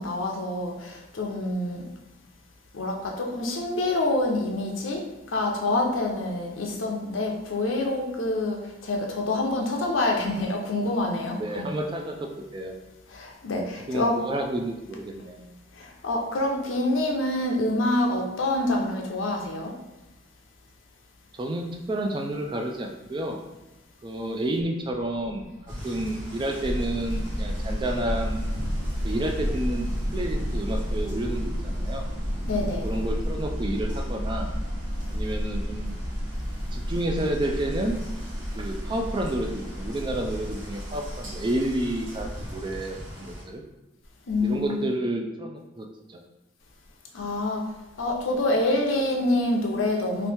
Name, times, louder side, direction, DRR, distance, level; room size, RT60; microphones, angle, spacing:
voice 1, 0.0-1.8 2.7-5.0 5.3-11.7 13.1-14.2 15.8-19.7 32.5-32.8 44.3-44.9 47.1-47.7 48.0-50.3, left 2 dB, 85° left, 1 dB, 0.6 m, -26 dB
voice 2, 11.4-12.7 13.9-15.4 21.4-23.4 24.0-25.5 25.8-28.5 29.0-32.0 32.8-34.5 35.1-36.0 36.7-38.0 38.6-43.6 44.4-46.2, right 1 dB, 25° right, 2 dB, 0.3 m, -30 dB
sound 1, 25.7-43.4, equal, 70° right, 1.3 m, -42 dB
sound 2, 26.6-42.5, equal, ahead, 0.8 m, -31 dB
2.9 x 2.6 x 3.4 m, 1.1 s
head